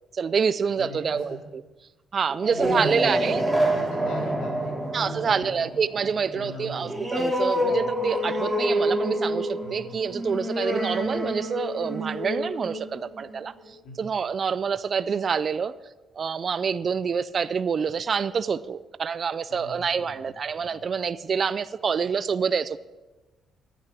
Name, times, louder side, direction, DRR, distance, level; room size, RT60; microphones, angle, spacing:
voice 1, 0.1-1.6 2.1-3.5 4.9-15.7 16.2-22.8, right 6 dB, 45° right, 15 dB, 0.4 m, -27 dB
voice 2, 0.8-1.4 2.5-4.7 5.0-5.9 6.3-6.9 7.6-7.9 9.6-10.0 11.0-11.1 13.8-14.0 19.5-19.9 20.6-20.8, left 1 dB, 85° left, -1 dB, 4.2 m, -40 dB
sound 1, 2.3-13.5, equal, ahead, 3.7 m, -27 dB
11.0 x 9.1 x 7.6 m, 1.2 s
cardioid pair, 90°, 0 cm